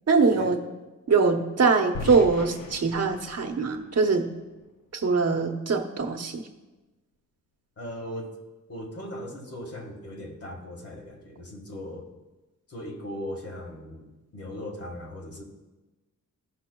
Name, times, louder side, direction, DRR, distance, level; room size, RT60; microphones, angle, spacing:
voice 1, 0.1-0.6 1.1-4.3 4.9-6.4, right 4 dB, 50° right, 4 dB, 1.0 m, -22 dB
sound 1, 1.9-4.9, left 4 dB, 80° left, 0.6 m, -40 dB
voice 2, 7.8-8.3 8.7-12.1 12.7-15.4, left 1 dB, 45° left, 1 dB, 1.7 m, -38 dB
15.5 x 5.7 x 2.3 m, 1.1 s
wide cardioid pair, 115°, 32 cm